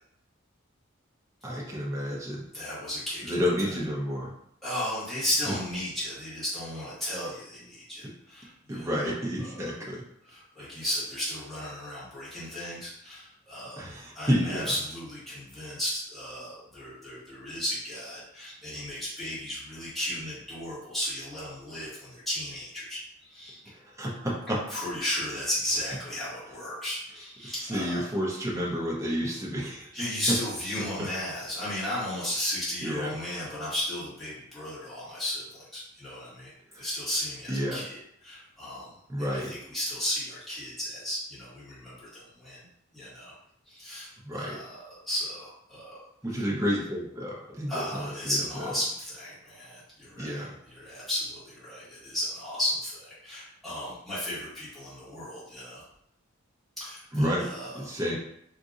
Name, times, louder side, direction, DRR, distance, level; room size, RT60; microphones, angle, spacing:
voice 1, 1.4-2.4 3.2-4.3 8.7-10.0 10.7-10.8 13.8-14.7 24.0-24.6 27.4-29.9 32.8-33.1 36.7-36.8 37.5-37.8 39.1-39.5 44.2-44.6 46.2-48.7 50.2-50.5 57.1-57.5 57.7-58.2, equal, 15° right, -4 dB, 0.6 m, -30 dB
voice 2, 2.5-3.7 4.6-9.1 9.4-9.6 10.2-13.8 14.1-23.6 24.7-28.1 29.9-38.9 39.2-42.6 42.9-43.3 43.7-46.0 46.3-46.4 47.7-55.8 56.8-57.9, left 1 dB, ahead, -12 dB, 1.5 m, -35 dB
3.8 x 2.6 x 2.4 m, 0.72 s
head